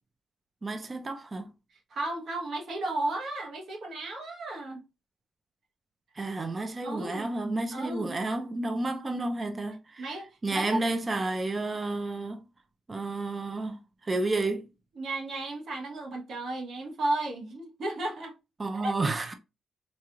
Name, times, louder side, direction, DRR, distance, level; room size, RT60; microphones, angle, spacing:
voice 1, 0.6-1.5 6.2-10.1 10.4-12.5 12.9-14.7 18.6-19.3, right 2 dB, 30° right, 0.6 m, -31 dB
voice 2, 1.9-4.8 6.8-7.3 7.7-8.2 10.0-10.8 14.9-18.3 18.8-18.9, right 2 dB, 60° right, 1.2 m, -34 dB
3.9 x 3.0 x 2.4 m
cardioid pair, 80°, 0 cm